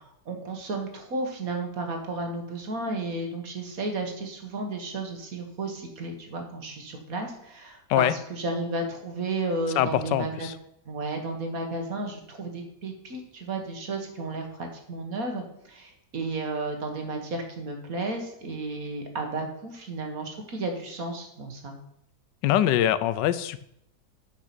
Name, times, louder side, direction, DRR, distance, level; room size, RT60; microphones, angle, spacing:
voice 1, 0.3-10.5 10.9-21.7, right 2 dB, 55° right, 4 dB, 1.8 m, -33 dB
voice 2, 9.8-10.5 22.4-23.6, left 11 dB, 90° left, 15 dB, 1.3 m, -23 dB
8.2 x 6.1 x 5.9 m, 0.74 s
omnidirectional pair, 1.9 m